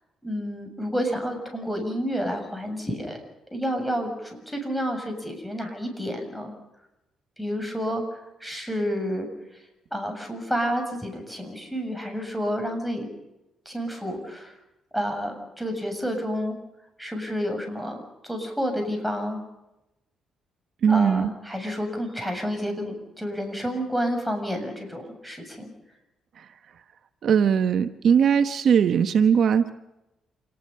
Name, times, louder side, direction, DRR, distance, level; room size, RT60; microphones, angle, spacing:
voice 1, 0.2-3.2 3.5-6.5 7.4-9.3 9.9-13.1 13.7-14.5 14.9-16.6 17.0-19.4 20.9-25.7, equal, ahead, 4 dB, 7.4 m, -30 dB
voice 2, 20.8-21.3 27.2-29.7, right 7 dB, 60° right, 9 dB, 1.1 m, -20 dB
28.0 x 19.5 x 5.5 m, 0.94 s
cardioid pair, 90°, 0 cm